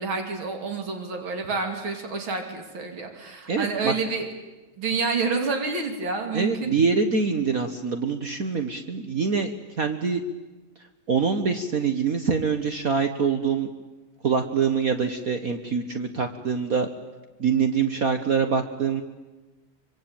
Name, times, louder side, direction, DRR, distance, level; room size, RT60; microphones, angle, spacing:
voice 1, 0.0-4.3 4.8-6.7, right 4 dB, 85° right, 4 dB, 3.5 m, -28 dB
voice 2, 3.5-3.9 6.3-9.5 9.8-10.2 11.1-13.7 14.2-16.9 17.4-19.0, right 5 dB, 50° right, 7 dB, 1.7 m, -24 dB
25.0 x 25.0 x 9.0 m, 1.1 s
omnidirectional pair, 2.1 m